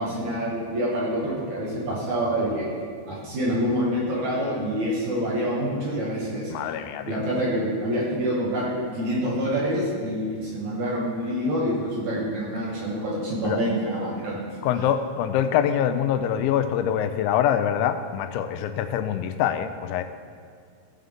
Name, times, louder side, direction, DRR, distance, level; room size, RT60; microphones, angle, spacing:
voice 1, 0.0-2.7 3.1-6.5 7.0-14.5, equal, 55° right, -6 dB, 2.3 m, -26 dB
voice 2, 6.5-7.2 13.4-13.6 14.6-20.0, left 9 dB, 90° left, 9 dB, 2.9 m, -24 dB
16.0 x 7.4 x 3.6 m, 2.1 s
omnidirectional pair, 5.2 m